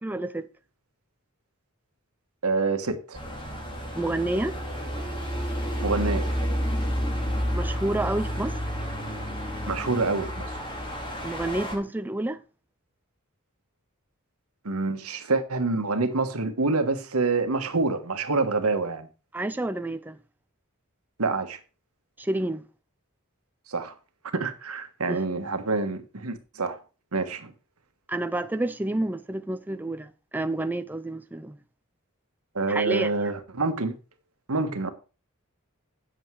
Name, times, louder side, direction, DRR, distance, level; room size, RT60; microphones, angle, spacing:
voice 1, 0.0-0.5 3.9-4.6 7.5-8.6 11.2-12.4 19.3-20.2 22.2-22.6 25.1-25.2 28.1-31.6 32.7-33.1, right 1 dB, 10° right, 0.5 m, -29 dB
voice 2, 2.4-3.2 5.8-6.2 9.7-10.5 14.6-19.1 21.2-21.6 23.7-23.9 24.3-26.8 27.1-27.5 32.5-33.9 34.5-34.9, right 3 dB, 90° right, 1.5 m, -27 dB
sound 1, 3.1-11.8, equal, 25° left, 2.4 m, -30 dB
8.9 x 7.9 x 4.8 m
head